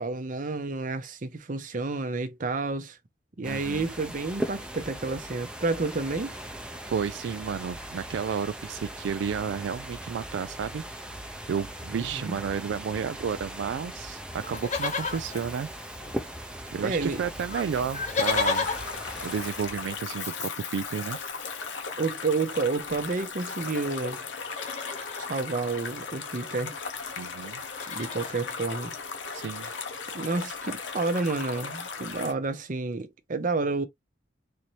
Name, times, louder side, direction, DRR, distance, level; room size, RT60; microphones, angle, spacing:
voice 1, 0.0-3.0 3.4-6.4 11.9-12.4 16.8-17.2 22.0-24.2 25.2-26.7 27.9-28.9 30.1-33.9, right 3 dB, 45° right, 0.7 m, -30 dB
sound 1, 3.4-20.2, right 1 dB, 5° right, 0.6 m, -39 dB
voice 2, 3.5-3.9 6.9-10.8 11.5-15.7 16.7-18.7 19.2-21.2 27.2-27.6 29.3-29.7, right 7 dB, 75° right, 0.3 m, -32 dB
Livestock farm animals working animals, 14.4-16.4 16.7-16.8 17.0-23.9 24.4-25.3 26.5-26.6 26.8-27.1 27.4-28.4 29.0-29.1, left 5 dB, 40° left, 0.9 m, -35 dB
sound 2, 18.2-32.3, left 5 dB, 75° left, 1.0 m, -37 dB
4.3 x 2.7 x 3.0 m
head